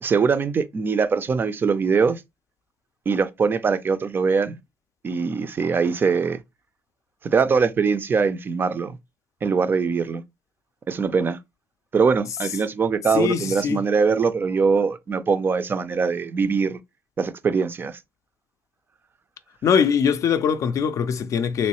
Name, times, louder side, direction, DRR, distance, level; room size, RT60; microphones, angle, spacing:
voice 1, 0.0-2.2 3.1-4.6 5.0-6.4 7.2-9.0 9.4-10.2 10.9-11.4 11.9-16.8 17.2-18.0, right 5 dB, 30° right, 0.4 m, -22 dB
voice 2, 13.1-13.8 19.6-21.7, left 7 dB, 50° left, 0.4 m, -22 dB
3.1 x 3.0 x 2.9 m
cardioid pair, 115°, 7 cm